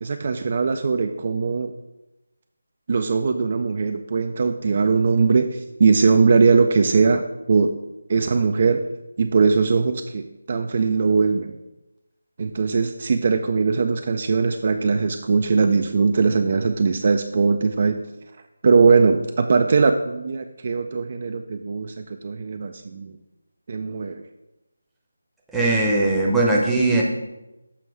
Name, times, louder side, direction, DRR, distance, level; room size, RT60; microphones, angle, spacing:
voice 1, 0.0-1.7 2.9-7.7 8.1-8.8 9.2-11.5 12.4-18.0 18.6-23.2 23.7-24.2, right 4 dB, 45° right, 6 dB, 0.3 m, -20 dB
voice 2, 25.5-27.0, right 2 dB, 5° right, -4 dB, 0.7 m, -19 dB
7.0 x 3.0 x 4.7 m, 0.98 s
figure-of-eight pair, 160°, 0 cm